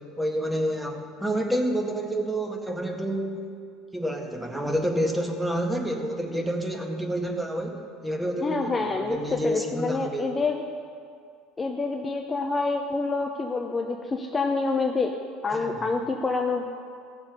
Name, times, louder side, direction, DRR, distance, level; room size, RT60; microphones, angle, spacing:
voice 1, 0.2-3.4 3.9-10.3 15.5-15.9, equal, 5° right, 2 dB, 1.6 m, -29 dB
voice 2, 8.4-10.6 11.6-15.1 15.4-16.7, left 3 dB, 25° left, 3 dB, 0.7 m, -27 dB
15.5 x 7.2 x 5.3 m, 2.3 s
supercardioid pair, 85°, 0 cm